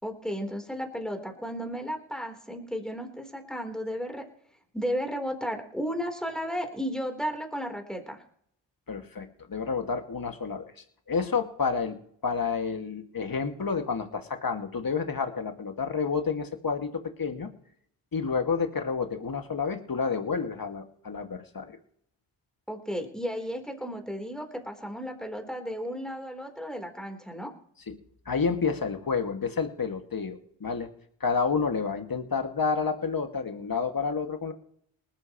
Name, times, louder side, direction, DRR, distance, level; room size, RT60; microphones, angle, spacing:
voice 1, 0.0-4.2 4.7-8.2 22.7-27.5, equal, ahead, 4 dB, 3.9 m, -34 dB
voice 2, 8.9-12.0 12.2-17.5 18.1-21.8 27.9-28.0 28.3-30.9 31.2-34.5, left 5 dB, 45° left, 6 dB, 2.2 m, -30 dB
19.5 x 12.5 x 3.2 m, 0.64 s
supercardioid pair, 45°, 50 cm